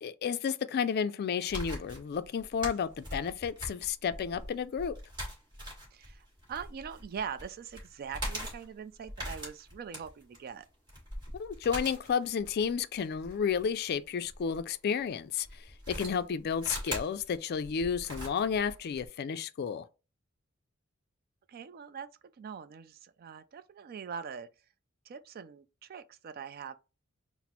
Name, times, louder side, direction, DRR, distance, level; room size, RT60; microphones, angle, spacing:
voice 1, 0.0-4.9 11.3-19.9, left 7 dB, 50° left, 0.3 m, -32 dB
sound 1, 1.4-14.6 15.4-19.1, equal, 20° right, 2.0 m, -42 dB
voice 2, 5.9-10.7 21.5-22.1 22.4-24.5 25.1-26.8, right 7 dB, 45° right, 0.3 m, -42 dB
4.1 x 2.0 x 4.2 m
head